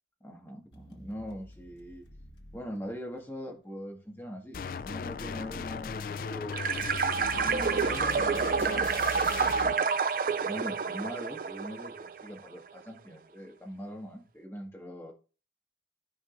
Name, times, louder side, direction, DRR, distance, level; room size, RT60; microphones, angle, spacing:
voice 1, 0.2-2.1 2.5-6.6 7.4-9.9 10.4-15.1, equal, 15° left, 1.8 m, -42 dB
sound 1, 0.7-3.7 6.7-10.1, equal, 85° left, 1.3 m, -54 dB
sound 2, 4.5-9.7, left 5 dB, 50° left, 0.3 m, -37 dB
sound 3, 6.5-12.3, right 6 dB, 50° right, 0.4 m, -29 dB
13.5 x 5.1 x 2.6 m
head